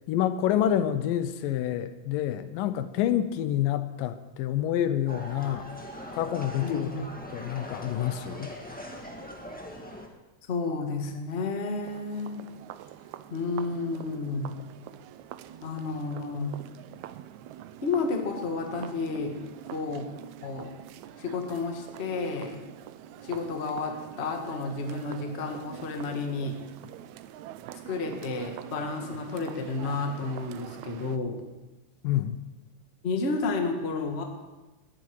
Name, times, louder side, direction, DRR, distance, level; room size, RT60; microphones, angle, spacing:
voice 1, 0.1-5.7 6.1-6.9 7.3-8.5 32.0-32.4, left 11 dB, 80° left, 12 dB, 2.4 m, -28 dB
sound 1, 5.1-10.1, equal, 10° left, 0.3 m, -41 dB
voice 2, 6.6-7.1 10.5-12.4 13.3-14.6 15.6-16.6 17.8-19.4 19.7-20.0 20.4-20.8 21.2-22.6 23.2-26.6 27.8-31.4 33.0-34.2, left 3 dB, 35° left, 3 dB, 1.0 m, -31 dB
sound 2, 11.8-31.2, right 12 dB, 85° right, 1.6 m, -45 dB
20.0 x 13.5 x 4.8 m, 1.1 s
omnidirectional pair, 4.0 m